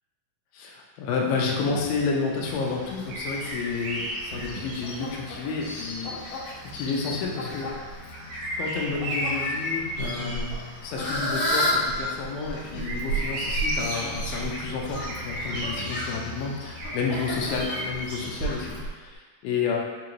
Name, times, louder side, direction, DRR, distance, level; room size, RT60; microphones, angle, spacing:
voice 1, 0.5-6.2 6.5-7.7 8.6-10.5 10.8-19.8, left 4 dB, 90° left, -1 dB, 2.3 m, -30 dB
sound 1, 1.3-2.1 4.3-4.9 7.1-7.9 10.0-10.8 12.6-13.6 15.5-16.2, left 3 dB, 50° left, 1.8 m, -40 dB
Fowl, 2.4-18.8, left 1 dB, 70° left, 2.1 m, -34 dB
sound 2, 3.1-5.1 6.0-6.1 7.7-10.6 10.9-11.3 11.7-16.1 16.7-18.9 19.1-19.2, right 1 dB, 65° right, 2.0 m, -32 dB
5.5 x 2.5 x 2.9 m, 1.4 s
omnidirectional pair, 4.0 m